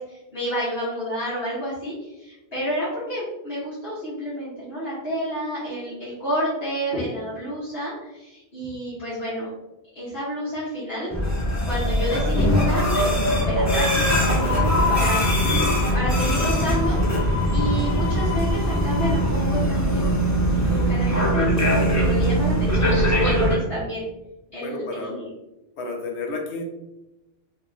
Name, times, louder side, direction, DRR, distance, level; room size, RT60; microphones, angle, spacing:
voice 1, 0.0-9.5 10.0-11.1 11.6-13.1 13.4-15.3 15.9-20.1 20.5-24.1 24.5-25.3, equal, 60° left, -12 dB, 1.7 m, -29 dB
sound 1, 11.1-23.6, equal, 20° left, 0.7 m, -21 dB
voice 2, 24.6-25.2 25.8-26.6, left 3 dB, 80° left, 2 dB, 1.1 m, -31 dB
3.9 x 2.9 x 3.8 m, 0.97 s
omnidirectional pair, 1.1 m